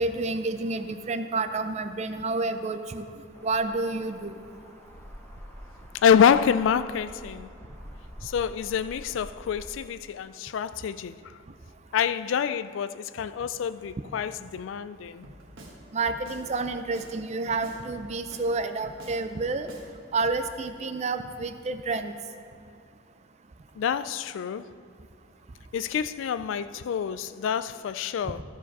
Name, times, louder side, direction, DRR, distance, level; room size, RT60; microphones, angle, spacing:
voice 1, 0.0-3.1 3.4-4.4 15.9-19.7 20.1-22.1 28.2-28.3, right 3 dB, 35° right, 0.4 m, -29 dB
sound 1, 3.3-9.7, equal, 10° left, 0.7 m, -47 dB
voice 2, 6.0-7.5 8.2-11.2 11.9-15.2 23.8-24.7 25.7-28.4, left 7 dB, 70° left, 0.3 m, -26 dB
Drum kit, 15.2-15.8 16.1-17.1 17.5-18.5 18.8-19.9 20.2-20.4, right 1 dB, 75° right, 1.4 m, -47 dB
13.5 x 5.0 x 5.3 m
head